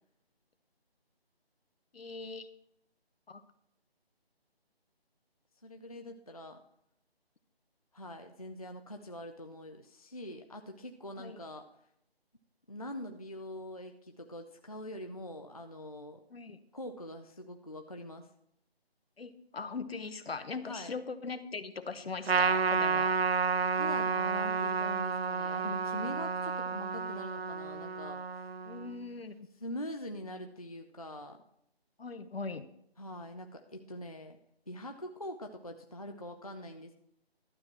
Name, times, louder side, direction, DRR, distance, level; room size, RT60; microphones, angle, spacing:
voice 1, 1.9-2.5 3.3-3.4 11.2-11.4 16.3-16.6 19.2-23.2 28.6-29.5 32.0-32.7, left 4 dB, 70° left, 11 dB, 1.0 m, -40 dB
voice 2, 5.6-6.6 7.9-11.7 12.7-16.2 16.7-18.3 20.6-20.9 23.7-28.5 29.6-31.4 33.0-34.4 34.7-36.9, left 1 dB, 35° left, 4 dB, 0.5 m, -43 dB
Trumpet, 22.3-29.0, right 5 dB, 75° right, 0.6 m, -31 dB
12.0 x 7.7 x 4.4 m, 0.76 s
figure-of-eight pair, 175°, 31 cm